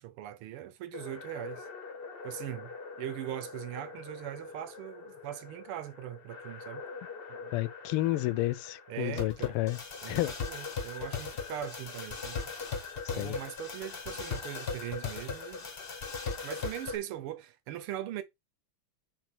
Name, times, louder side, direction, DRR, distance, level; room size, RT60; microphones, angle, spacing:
voice 1, 0.0-1.7 2.2-6.8 7.3-7.6 8.9-9.6 10.0-12.4 13.1-15.7 16.4-18.2, right 12 dB, 85° right, 1.7 m, -40 dB
sound 1, 0.9-17.0, left 5 dB, 35° left, 0.9 m, -40 dB
voice 2, 7.5-9.8 10.1-10.3 13.0-13.4, left 17 dB, 90° left, 1.5 m, -31 dB
4.5 x 4.5 x 5.9 m
omnidirectional pair, 2.4 m